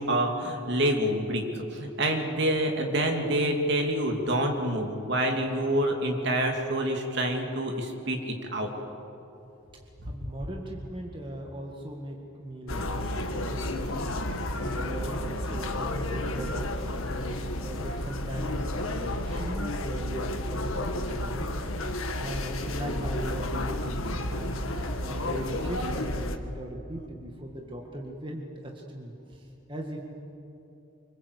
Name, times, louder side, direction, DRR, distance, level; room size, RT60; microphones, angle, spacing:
voice 1, 0.0-1.4 1.7-8.7, right 1 dB, 55° right, 2 dB, 3.0 m, -27 dB
voice 2, 10.0-14.3 14.6-17.2 17.6-21.7 22.2-24.6 25.0-30.0, right 1 dB, 25° right, 0 dB, 1.9 m, -39 dB
sound 1, 12.7-26.4, left 1 dB, 80° left, 1.7 m, -31 dB
26.0 x 24.5 x 8.4 m, 2.9 s
head